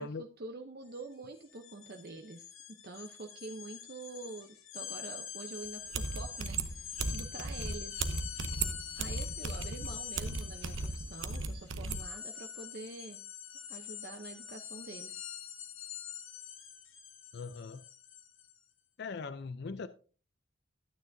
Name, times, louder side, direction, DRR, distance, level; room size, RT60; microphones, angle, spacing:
voice 1, 0.0-2.5 2.8-8.0 9.0-13.2 13.7-15.2, right 3 dB, 50° right, 0.7 m, -46 dB
sound 1, 0.9-1.0 1.3-18.6, left 9 dB, 85° left, 1.6 m, -45 dB
sound 2, 5.7-5.8 5.9-12.0, right 3 dB, 80° right, 0.9 m, -36 dB
voice 2, 17.3-17.8 19.0-19.9, left 4 dB, 55° left, 0.4 m, -40 dB
12.0 x 9.2 x 2.6 m
head